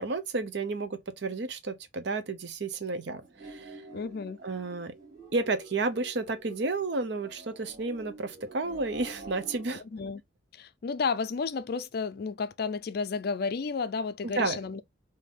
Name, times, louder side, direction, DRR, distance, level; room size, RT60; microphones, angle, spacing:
voice 1, 0.0-3.8 4.4-4.9 5.3-9.8 14.2-14.6, right 3 dB, 60° right, 0.6 m, -32 dB
sound 1, 3.2-9.8, right 2 dB, 40° right, 2.1 m, -48 dB
voice 2, 3.9-4.4 9.9-10.2 10.5-14.8, left 5 dB, 50° left, 0.4 m, -32 dB
3.8 x 2.7 x 3.4 m
head